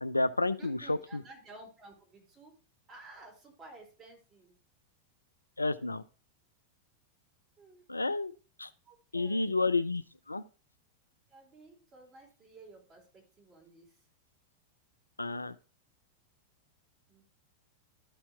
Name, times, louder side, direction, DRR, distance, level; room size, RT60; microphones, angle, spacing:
voice 1, 0.0-1.0 5.6-6.0 7.9-8.3 8.6-8.7 9.1-10.0 10.3-10.4 15.2-15.5, left 3 dB, 80° left, 14 dB, 0.4 m, -30 dB
voice 2, 0.6-2.5 2.9-4.6 7.6-7.8 8.9-9.5 10.3-10.5 11.3-14.0 17.1-17.3, right 3 dB, 30° right, -1 dB, 4.0 m, -54 dB
12.0 x 4.4 x 4.5 m, 0.34 s
figure-of-eight pair, 90°, 0 cm